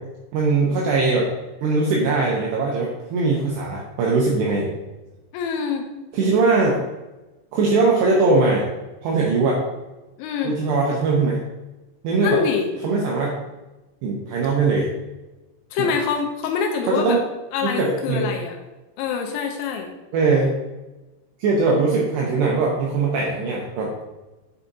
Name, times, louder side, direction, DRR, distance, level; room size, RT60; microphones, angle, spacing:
voice 1, 0.3-1.3 1.6-4.7 6.1-6.8 7.5-8.7 9.0-9.6 10.4-11.4 12.0-12.4 12.8-13.4 14.0-14.9 15.8-15.9 16.8-17.2 17.6-18.2 20.1-20.5 21.4-24.0, right 3 dB, 85° right, -3 dB, 2.4 m, -20 dB
voice 2, 5.3-5.8 10.2-10.5 12.2-12.7 15.7-17.2 17.5-18.6 19.0-19.9, left 6 dB, 85° left, 2 dB, 2.7 m, -24 dB
8.5 x 4.9 x 2.7 m, 1.1 s
omnidirectional pair, 5.9 m